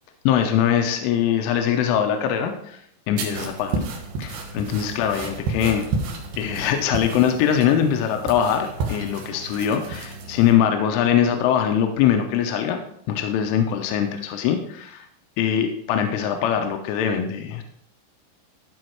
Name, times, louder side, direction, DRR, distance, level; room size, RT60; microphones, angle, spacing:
voice 1, 0.3-2.8 3.1-3.8 4.2-5.9 6.4-12.8 13.1-15.1 15.4-17.6, left 9 dB, 85° left, 5 dB, 3.2 m, -22 dB
sound 1, 3.2-10.5, right 3 dB, 65° right, 3.3 m, -31 dB
14.5 x 5.2 x 4.6 m, 0.72 s
omnidirectional pair, 5.7 m